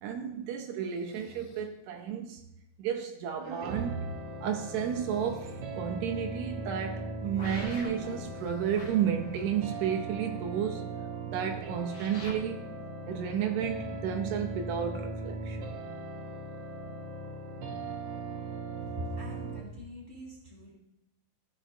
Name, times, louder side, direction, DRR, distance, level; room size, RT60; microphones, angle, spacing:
voice 1, 0.0-2.4 2.8-4.1 4.4-10.9 11.3-12.6 13.1-15.8, right 8 dB, 90° right, 4 dB, 1.6 m, -32 dB
Breathing, 0.8-1.8 4.5-5.5 7.9-9.3, left 6 dB, 75° left, 2.5 m, -55 dB
sound 1, 3.6-19.6, right 2 dB, 70° right, 1.9 m, -39 dB
sound 2, 7.4-8.2 8.7-9.8 11.9-12.3, left 1 dB, 50° left, 0.9 m, -45 dB
voice 2, 18.9-20.7, left 2 dB, 20° right, -4 dB, 2.7 m, -42 dB
13.0 x 6.2 x 2.5 m, 0.86 s
omnidirectional pair, 3.9 m